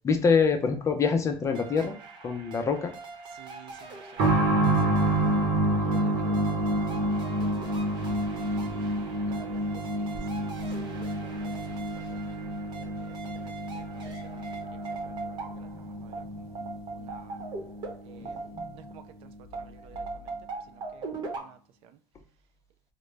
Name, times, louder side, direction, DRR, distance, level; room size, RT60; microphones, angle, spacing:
voice 1, 0.0-1.9 2.2-2.9 18.2-18.3 18.6-18.8, left 5 dB, 30° left, 0.6 m, -25 dB
sound 1, 1.4-19.1 19.5-21.4, right 3 dB, 45° right, 0.9 m, -41 dB
voice 2, 3.3-5.1 5.7-6.7 7.1-7.5 8.4-9.6 9.9-11.7 12.1-12.2 12.8-14.5 15.0-15.7 16.0-16.6 16.9-17.4 18.0-18.4 18.7-20.3 20.7-21.1 21.4-21.9, right 9 dB, 60° right, 0.4 m, -53 dB
sound 2, 4.2-18.6 18.9-19.0 19.9-20.0, right 1 dB, 75° right, 0.9 m, -29 dB
3.7 x 2.1 x 3.2 m
cardioid pair, 120°, 11 cm